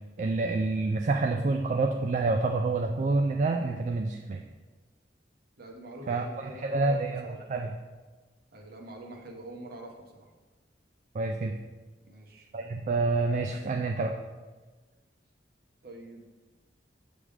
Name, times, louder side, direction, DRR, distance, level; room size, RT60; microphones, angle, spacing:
voice 1, 0.2-4.4 6.1-7.7 11.1-11.5 12.5-14.1, right 3 dB, 45° right, 3 dB, 0.3 m, -28 dB
voice 2, 5.6-7.4 8.5-10.3 12.0-12.5 15.8-16.3, right 1 dB, 60° right, 1 dB, 1.0 m, -45 dB
7.2 x 3.4 x 4.9 m, 1.3 s
head